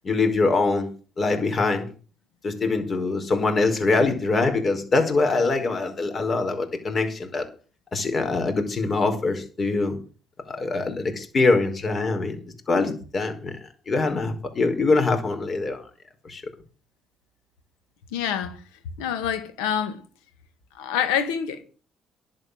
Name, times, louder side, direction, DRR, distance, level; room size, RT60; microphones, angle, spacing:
voice 1, 0.0-0.9 1.2-1.9 2.4-7.4 7.9-10.0 10.5-13.6 13.9-15.8 16.2-16.4, left 3 dB, 45° left, 4.8 m, -23 dB
voice 2, 18.1-18.6 19.0-20.0 20.7-21.6, left 8 dB, 90° left, 1.9 m, -26 dB
11.0 x 8.3 x 8.0 m
supercardioid pair, 65°, 0 cm